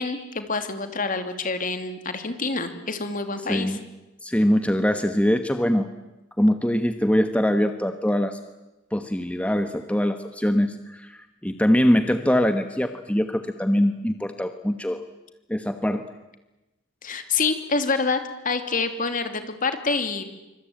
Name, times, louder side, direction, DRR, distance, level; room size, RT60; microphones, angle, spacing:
voice 1, 0.0-3.8 17.0-20.2, left 4 dB, 45° left, 8 dB, 2.8 m, -27 dB
voice 2, 4.2-5.9 6.4-8.4 8.9-15.0 15.5-16.1, equal, 5° left, 8 dB, 1.2 m, -23 dB
26.0 x 25.0 x 8.8 m, 1.0 s
head